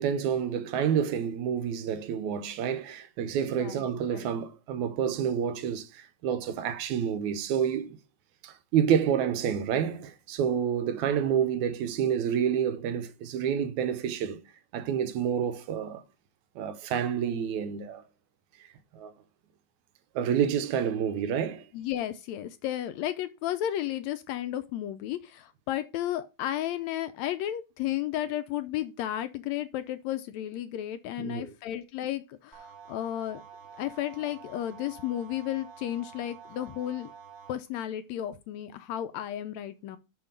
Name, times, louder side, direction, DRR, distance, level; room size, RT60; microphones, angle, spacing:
voice 1, 0.0-8.0 8.4-14.4 14.7-16.0 16.6-18.0 18.9-19.1 20.2-21.7 31.2-31.5, right 8 dB, 80° right, 2.1 m, -28 dB
voice 2, 3.6-4.4 21.7-33.4 33.7-37.1 37.5-40.0, left 12 dB, 80° left, 1.7 m, -33 dB
sound 1, 32.5-37.5, right 7 dB, 50° right, 0.8 m, -48 dB
5.9 x 5.8 x 5.1 m
omnidirectional pair, 3.5 m